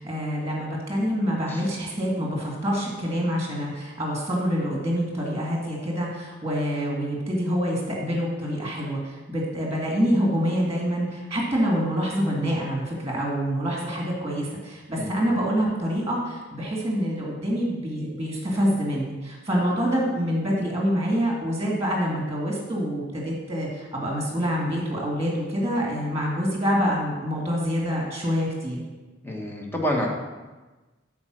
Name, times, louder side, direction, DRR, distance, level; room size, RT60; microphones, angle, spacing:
voice 1, 0.0-28.8, equal, 15° right, -2 dB, 1.9 m, -26 dB
voice 2, 29.2-30.1, equal, 10° left, 0 dB, 1.3 m, -28 dB
9.5 x 4.4 x 6.2 m, 1.2 s
head